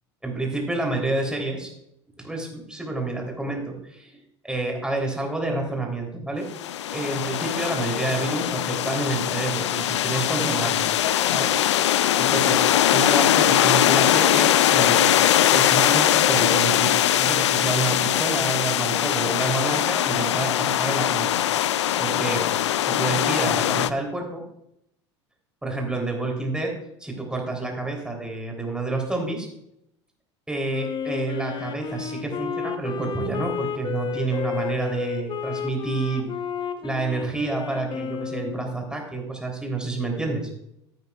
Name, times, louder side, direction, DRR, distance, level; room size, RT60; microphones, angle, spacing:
voice 1, 0.2-1.7 2.2-6.5 6.9-10.9 11.3-11.9 12.2-21.3 22.0-22.4 22.8-24.4 25.6-26.7 27.0-29.5 30.5-36.3 36.8-40.5, right 2 dB, 5° right, 1 dB, 3.5 m, -29 dB
sound 1, 6.5-23.9, left 11 dB, 75° left, 0.4 m, -21 dB
Wind instrument woodwind instrument, 30.7-38.8, left 7 dB, 35° left, 1.0 m, -32 dB
15.0 x 9.3 x 2.4 m, 0.80 s
hypercardioid pair, 75°, 15 cm